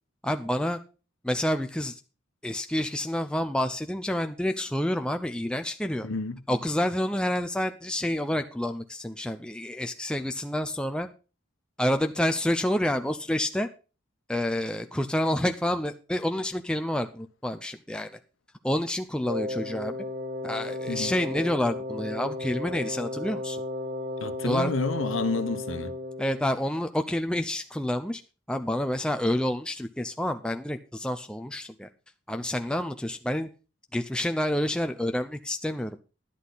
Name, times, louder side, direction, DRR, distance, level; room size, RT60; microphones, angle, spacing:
voice 1, 0.2-0.8 1.2-1.9 2.4-6.1 6.5-11.1 11.8-13.7 14.3-18.1 18.6-19.9 20.4-23.6 24.4-24.7 26.2-28.2 28.5-31.9 32.3-33.5 33.9-36.0, left 1 dB, 5° left, 0.5 m, -28 dB
voice 2, 6.0-6.4 20.9-21.1 24.2-25.9, left 3 dB, 75° left, 1.0 m, -29 dB
Wind instrument woodwind instrument, 19.2-26.5, left 2 dB, 65° right, 4.0 m, -34 dB
11.5 x 10.5 x 4.0 m
head